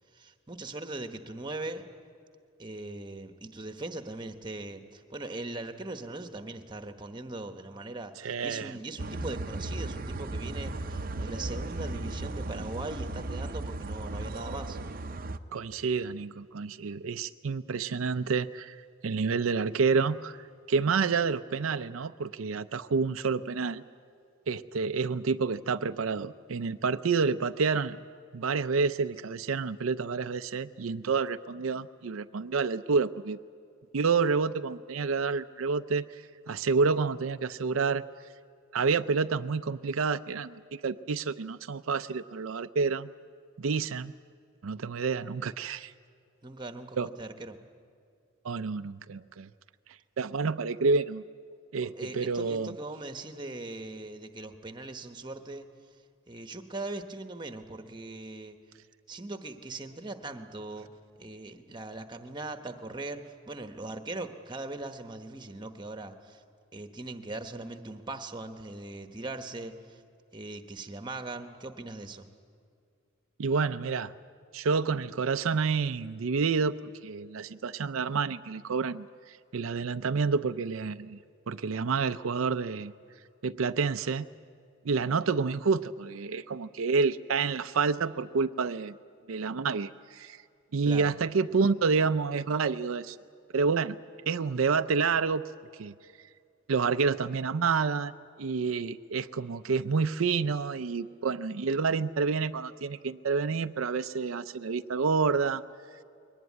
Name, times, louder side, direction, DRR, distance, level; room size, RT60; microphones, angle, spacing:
voice 1, 0.1-1.9 2.6-14.8 46.4-47.6 51.8-55.7 56.3-58.6 59.1-60.9 61.2-66.4 66.7-70.0 70.3-72.3 90.8-91.1, right 2 dB, 20° right, 7 dB, 1.2 m, -40 dB
voice 2, 8.2-8.7 15.5-20.4 20.7-23.8 24.5-28.0 28.3-33.4 33.9-38.0 38.7-43.1 43.6-44.1 44.6-45.9 47.0-47.1 48.4-49.5 50.2-51.2 51.7-52.7 73.4-74.1 74.5-76.8 77.0-81.2 81.5-82.9 83.4-84.3 84.8-89.0 89.3-90.4 90.7-93.2 93.5-94.0 94.3-95.4 95.8-95.9 96.7-98.1 98.4-105.6, right 5 dB, 85° right, 10 dB, 0.5 m, -29 dB
sound 1, 9.0-15.4, right 2 dB, 45° right, 0.7 m, -36 dB
22.0 x 19.0 x 9.6 m, 2.3 s
head